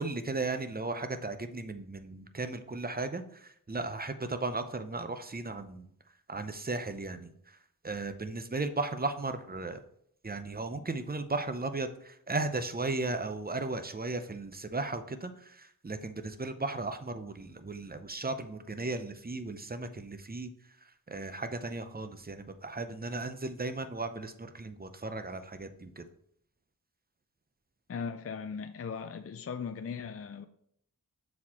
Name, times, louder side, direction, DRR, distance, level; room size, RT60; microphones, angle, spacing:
voice 1, 0.0-5.9 6.3-7.6 7.8-9.8 10.2-20.5 21.1-26.0, right 3 dB, 25° right, 0.7 m, -36 dB
voice 2, 27.9-30.5, left 6 dB, 40° left, 0.4 m, -38 dB
7.1 x 4.3 x 4.3 m
wide cardioid pair, 45°, 36 cm